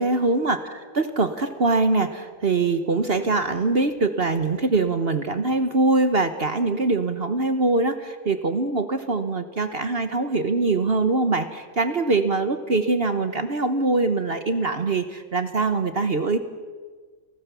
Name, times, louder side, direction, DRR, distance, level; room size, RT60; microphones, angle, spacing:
voice 1, 0.0-16.4, right 3 dB, 45° right, 10 dB, 1.3 m, -23 dB
29.0 x 19.5 x 7.0 m, 1.5 s
omnidirectional pair, 1.5 m